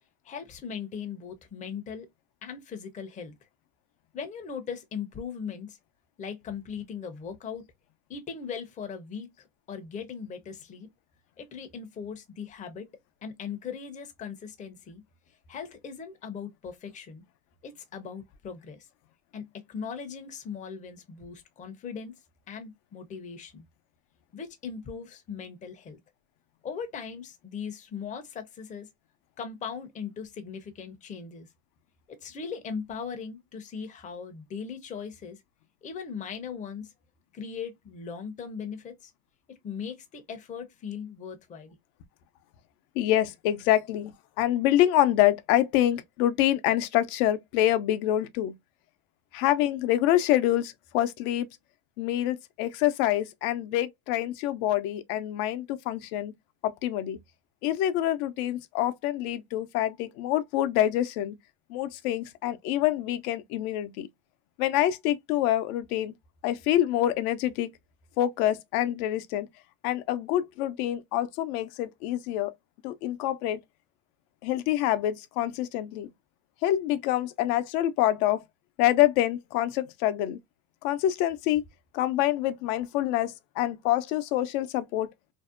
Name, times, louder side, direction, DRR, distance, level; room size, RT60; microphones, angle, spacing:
voice 1, 0.2-2.1 2.4-3.3 4.1-5.8 6.2-7.6 8.1-9.3 9.7-10.9 11.4-12.9 13.2-15.0 15.5-17.2 17.6-18.9 19.3-22.1 22.5-23.6 24.3-26.0 26.6-28.9 29.4-31.5 32.1-35.4 35.8-36.9 37.3-39.1 39.5-41.8, left 6 dB, 20° left, 0.5 m, -39 dB
voice 2, 43.0-48.5 49.3-51.5 52.0-56.3 56.6-57.2 57.6-61.4 61.7-64.1 64.6-66.1 66.4-67.7 68.2-69.5 69.8-72.5 72.8-73.6 74.4-76.1 76.6-78.4 78.8-80.4 80.8-81.6 81.9-85.1, left 13 dB, 75° left, 0.6 m, -26 dB
2.6 x 2.0 x 2.3 m
supercardioid pair, 115°, 44 cm